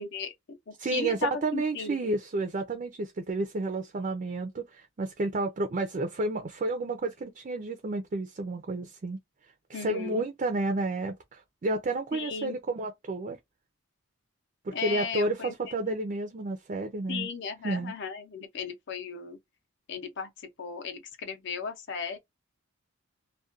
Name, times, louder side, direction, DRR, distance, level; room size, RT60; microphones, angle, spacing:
voice 1, 0.0-2.0 9.7-10.2 12.1-12.6 14.7-16.0 17.1-19.4 19.9-22.2, left 5 dB, 55° left, 0.6 m, -36 dB
voice 2, 0.8-9.2 9.7-13.4 14.6-17.3 17.6-17.9, right 2 dB, 35° right, 0.4 m, -31 dB
2.3 x 2.1 x 2.5 m
head